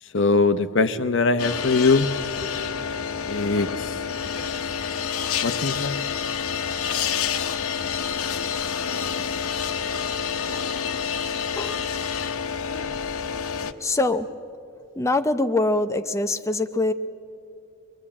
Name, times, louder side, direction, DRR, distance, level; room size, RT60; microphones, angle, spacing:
voice 1, 0.0-2.1 3.3-4.0 5.4-6.0, left 3 dB, 60° left, 9 dB, 0.8 m, -22 dB
sound 1, 1.4-13.7, left 7 dB, 90° left, 1.0 m, -28 dB
voice 2, 13.8-14.3 15.0-16.9, left 2 dB, 15° left, 8 dB, 0.6 m, -23 dB
23.5 x 22.5 x 8.6 m, 2.8 s
head